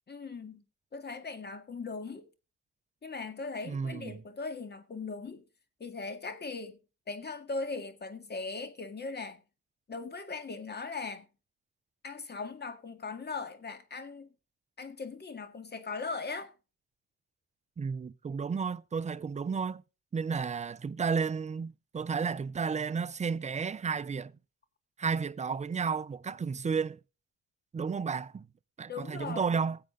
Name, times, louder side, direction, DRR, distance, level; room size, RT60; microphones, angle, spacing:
voice 1, 0.1-0.6 0.9-2.3 3.0-5.4 5.8-6.8 7.1-9.4 9.9-11.3 12.0-14.3 14.8-16.5 28.9-29.6, left 4 dB, 35° left, 2.0 m, -39 dB
voice 2, 3.6-4.2 17.8-19.8 20.1-24.3 25.0-27.0 27.7-28.5 28.8-29.8, right 5 dB, 25° right, 0.6 m, -32 dB
19.0 x 7.8 x 3.8 m
cardioid pair, 90°, 30 cm